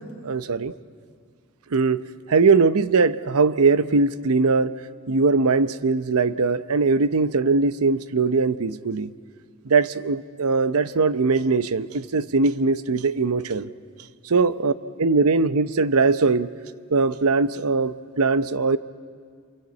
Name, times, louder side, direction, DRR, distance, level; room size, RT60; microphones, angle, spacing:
voice 1, 0.2-0.7 1.7-2.0 2.3-4.7 5.1-9.1 9.7-13.7 14.3-14.7 15.0-16.5 16.9-18.8, right 4 dB, 75° right, 13 dB, 0.7 m, -21 dB
28.0 x 23.0 x 8.3 m, 2.1 s
head